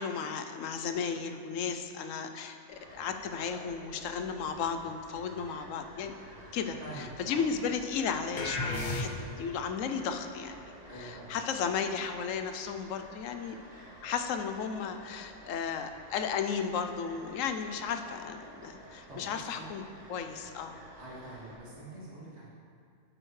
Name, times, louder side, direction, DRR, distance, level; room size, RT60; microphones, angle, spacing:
voice 1, 0.0-6.1 6.5-9.1 9.4-13.7 14.0-19.8 20.1-20.8, left 6 dB, 85° left, 7 dB, 1.0 m, -34 dB
sound 1, 2.7-21.6, right 1 dB, 30° right, 2.1 m, -52 dB
voice 2, 6.8-7.4 10.9-11.4 19.1-19.7 21.0-22.5, right 1 dB, 60° right, -8 dB, 2.4 m, -45 dB
sound 2, 8.4-9.5, left 2 dB, 45° left, 0.8 m, -33 dB
9.0 x 7.7 x 3.2 m, 2.2 s
omnidirectional pair, 1.3 m